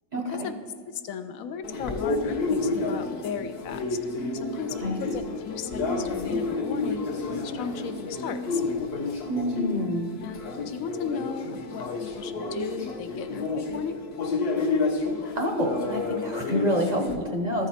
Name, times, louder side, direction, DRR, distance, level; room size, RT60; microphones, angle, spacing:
voice 1, 0.1-0.5 4.8-5.0 9.3-10.1 15.4-17.7, equal, 40° right, 2 dB, 0.7 m, -27 dB
voice 2, 0.9-4.0 4.3-8.6 10.2-10.4 10.7-14.0, left 6 dB, 75° left, 10 dB, 1.0 m, -36 dB
sound 1, 1.6-17.2, left 3 dB, 55° left, 1.0 m, -30 dB
13.0 x 4.9 x 4.2 m, 2.2 s
omnidirectional pair, 1.4 m